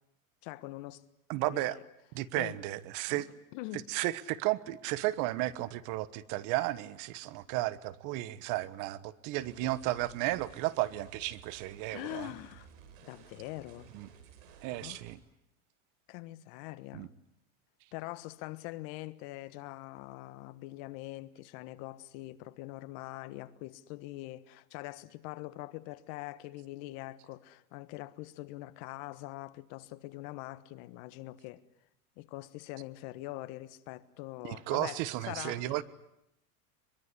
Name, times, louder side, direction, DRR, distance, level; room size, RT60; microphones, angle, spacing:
voice 1, 0.4-1.0 1.4-1.6 2.4-2.6 3.1-3.2 3.5-3.9 11.9-12.7 13.0-13.9 14.7-15.0 16.1-17.1 17.9-31.6 32.2-35.8, left 18 dB, 50° left, 1.5 m, -43 dB
voice 2, 1.3-1.8 2.1-3.3 3.9-12.3 13.9-14.1 14.6-15.2 16.9-17.1 34.4-35.8, right 17 dB, 45° right, 1.3 m, -33 dB
sound 1, 9.3-15.1, right 7 dB, 65° right, 6.0 m, -55 dB
23.0 x 23.0 x 9.8 m
supercardioid pair, 135°, 43 cm